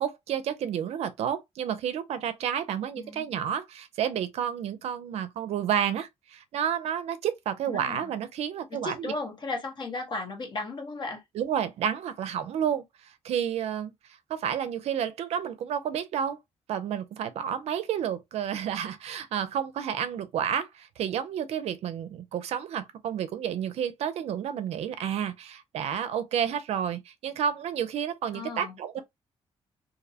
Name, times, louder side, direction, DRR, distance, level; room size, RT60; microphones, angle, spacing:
voice 1, 0.0-9.1 11.4-12.8 13.2-13.9 14.3-16.4 16.7-29.0, right 9 dB, 75° right, 0.4 m, -30 dB
voice 2, 2.9-3.3 7.7-8.1 8.7-11.2 28.3-29.0, left 3 dB, 45° left, 0.9 m, -36 dB
2.5 x 2.0 x 2.7 m
cardioid pair, 100°, 11 cm